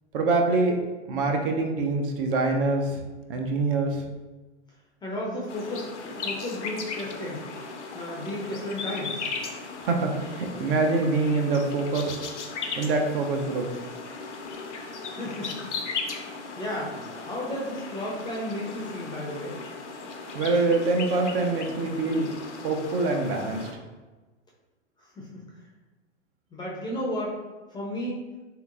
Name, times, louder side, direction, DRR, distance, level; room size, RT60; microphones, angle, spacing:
voice 1, 0.1-0.8 1.1-3.0 3.3-4.0 9.8-12.2 12.8-13.7 20.3-22.3 22.6-23.7, right 3 dB, 50° right, 3 dB, 0.6 m, -25 dB
voice 2, 5.0-7.5 7.9-9.3 15.0-16.2 16.6-19.6 25.0-25.4 26.5-27.4 27.7-28.2, left 1 dB, 15° left, -4 dB, 0.5 m, -34 dB
sound 1, 5.5-23.7, left 4 dB, 80° left, 0.6 m, -37 dB
3.4 x 2.8 x 2.4 m, 1.2 s
hypercardioid pair, 105°, 35 cm